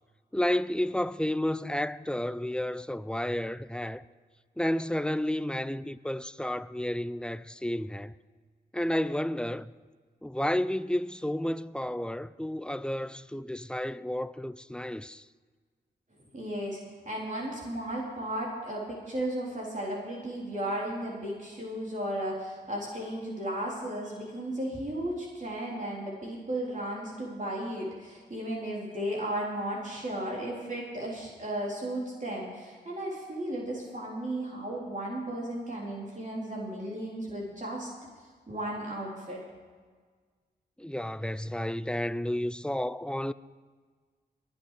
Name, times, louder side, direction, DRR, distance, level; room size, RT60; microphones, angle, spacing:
voice 1, 0.3-4.0 4.6-8.1 8.7-9.7 10.2-15.3 40.8-43.3, left 1 dB, 5° left, 0.5 m, -31 dB
voice 2, 16.3-16.8 17.1-37.9 38.5-39.4, right 1 dB, 45° right, 3.9 m, -35 dB
22.0 x 8.3 x 5.0 m
cardioid pair, 40°, 18 cm